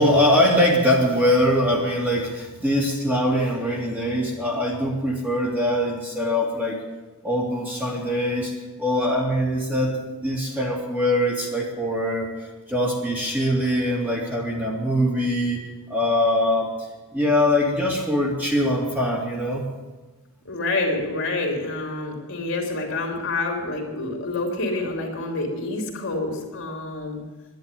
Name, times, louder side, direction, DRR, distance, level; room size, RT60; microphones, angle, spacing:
voice 1, 0.0-6.8 7.2-8.5 8.8-15.6 15.9-16.7 17.1-19.6, left 1 dB, 10° right, -3 dB, 2.4 m, -22 dB
voice 2, 20.5-27.2, left 2 dB, 60° left, 1 dB, 3.1 m, -27 dB
11.0 x 11.0 x 9.0 m, 1.2 s
head